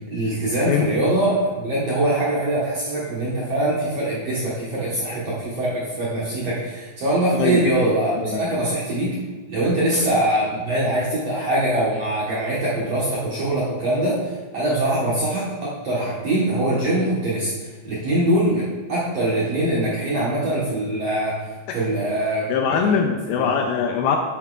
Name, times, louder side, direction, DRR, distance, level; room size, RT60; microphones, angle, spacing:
voice 1, 0.1-9.2 9.5-14.2 14.5-21.4 21.7-23.0 23.4-23.5, right 1 dB, 60° right, -8 dB, 1.7 m, -23 dB
voice 2, 22.5-24.2, left 7 dB, 85° left, 3 dB, 2.3 m, -22 dB
8.5 x 7.7 x 2.4 m, 1.3 s
omnidirectional pair, 4.7 m